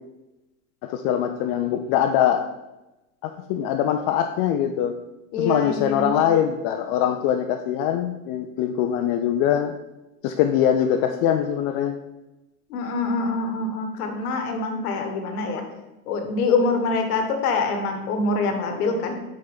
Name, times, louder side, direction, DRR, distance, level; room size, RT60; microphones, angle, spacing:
voice 1, 0.8-2.4 3.2-4.9 5.4-9.7 10.2-11.9, left 10 dB, 45° left, 6 dB, 0.5 m, -22 dB
voice 2, 5.3-6.2 12.7-15.6 16.1-19.1, left 3 dB, 80° left, 5 dB, 1.4 m, -25 dB
7.2 x 4.3 x 3.5 m, 1.0 s
hypercardioid pair, 100°, 45 cm